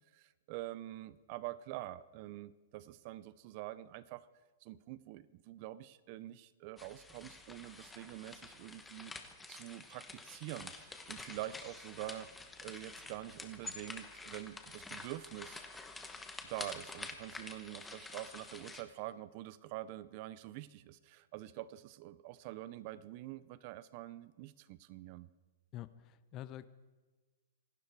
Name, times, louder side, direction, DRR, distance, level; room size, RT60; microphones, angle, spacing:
voice 1, 0.1-4.3 4.6-9.1 9.5-12.3 12.6-15.6 16.4-25.3, right 15 dB, 40° right, 18 dB, 0.6 m, -46 dB
sound 1, 6.8-18.8, left 3 dB, 5° left, 1.1 m, -49 dB
voice 2, 25.7-26.7, left 13 dB, 25° left, 16 dB, 0.6 m, -46 dB
26.0 x 12.0 x 4.7 m, 1.3 s
hypercardioid pair, 155°, 0 cm